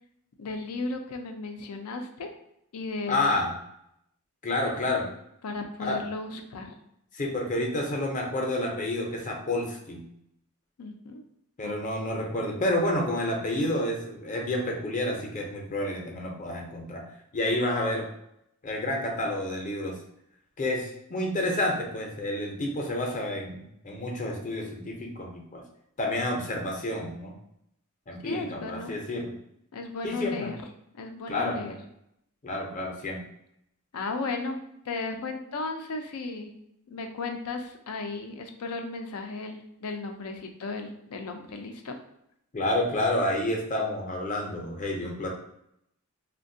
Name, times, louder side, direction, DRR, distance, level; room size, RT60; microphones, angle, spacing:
voice 1, 0.4-2.3 2.7-3.3 5.4-6.7 10.8-11.2 11.6-12.0 28.2-29.0 29.7-30.6 30.9-31.8 33.9-34.6 34.9-36.5 36.9-42.0, left 3 dB, 85° left, 5 dB, 0.4 m, -35 dB
voice 2, 3.1-3.6 4.4-5.1 5.8-6.0 7.1-10.1 11.6-17.0 17.3-18.0 18.6-20.0 20.6-25.6 26.0-27.3 28.1-29.3 30.0-30.5 31.3-31.8 32.4-33.2 42.5-45.3, left 1 dB, 35° left, 0 dB, 0.6 m, -29 dB
3.3 x 2.2 x 2.6 m, 0.77 s
head